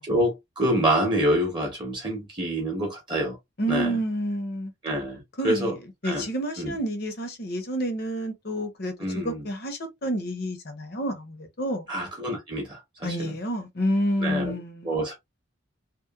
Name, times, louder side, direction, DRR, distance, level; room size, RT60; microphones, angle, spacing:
voice 1, 0.1-3.4 3.7-4.0 4.8-5.7 6.0-6.2 6.6-6.7 9.0-9.4 11.9-13.3 14.2-14.6 14.8-15.1, right 1 dB, 25° right, 0.6 m, -26 dB
voice 2, 3.6-4.7 5.4-11.9 13.0-14.9, equal, 50° left, 0.6 m, -29 dB
2.9 x 2.1 x 2.2 m
head